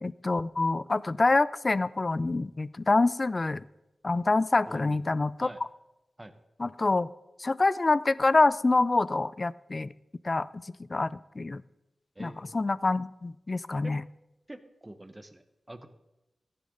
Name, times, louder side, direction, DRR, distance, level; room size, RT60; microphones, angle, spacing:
voice 1, 0.0-3.6 4.0-5.5 6.6-7.1 7.4-9.9 10.2-10.6 10.9-11.6 12.2-14.0, left 3 dB, 40° left, 18 dB, 0.4 m, -26 dB
voice 2, 4.7-5.0 5.4-5.6 6.2-6.3 12.1-12.5 13.8-13.9 14.5-14.6 14.8-15.9, right 1 dB, 20° right, 9 dB, 1.2 m, -45 dB
15.0 x 10.5 x 4.0 m, 0.93 s
cardioid pair, 60°, 0 cm